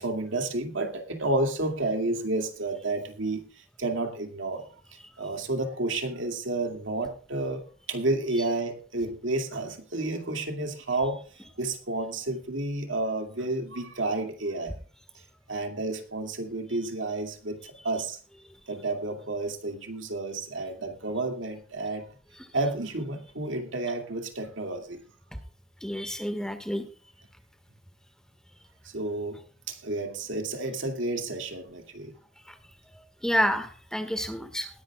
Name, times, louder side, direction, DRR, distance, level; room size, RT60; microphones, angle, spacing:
voice 1, 0.0-3.4 3.8-4.6 5.2-7.6 7.9-11.2 11.6-14.7 15.5-18.2 18.7-22.1 22.5-25.0 28.9-29.4 29.7-32.1, right 2 dB, 75° right, 2.3 m, -30 dB
voice 2, 25.8-26.8 33.2-34.7, equal, 5° left, 1.7 m, -28 dB
20.5 x 11.0 x 2.4 m
head